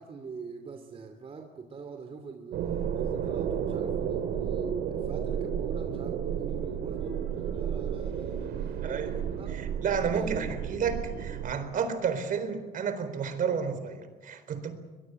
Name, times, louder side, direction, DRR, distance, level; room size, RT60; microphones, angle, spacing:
voice 1, 0.0-9.5 10.1-10.5, right 5 dB, 35° right, 5 dB, 2.7 m, -42 dB
sound 1, 2.5-11.5, right 8 dB, 75° right, 2.7 m, -32 dB
voice 2, 8.8-14.7, right 6 dB, 55° right, 10 dB, 4.0 m, -31 dB
22.0 x 22.0 x 8.3 m, 1.3 s
cardioid pair, 110°, 17 cm